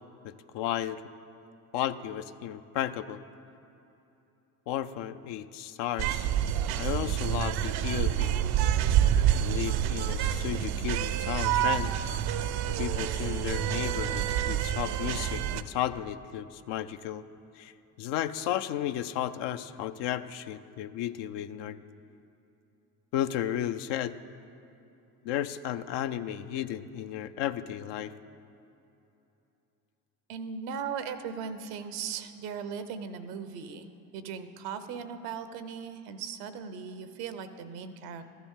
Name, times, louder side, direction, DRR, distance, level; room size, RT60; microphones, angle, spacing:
voice 1, 0.2-1.0 1.7-3.2 4.7-6.3 6.8-8.3 9.3-12.0 12.7-17.2 17.6-21.8 23.1-24.2 25.2-28.1, left 11 dB, 60° left, 12 dB, 0.6 m, -33 dB
sound 1, 6.0-15.6, right 11 dB, 55° right, 0.6 m, -28 dB
voice 2, 30.3-33.9 34.1-38.2, right 6 dB, 80° right, 11 dB, 0.8 m, -38 dB
13.5 x 9.7 x 3.6 m, 2.9 s
hypercardioid pair, 65°, 48 cm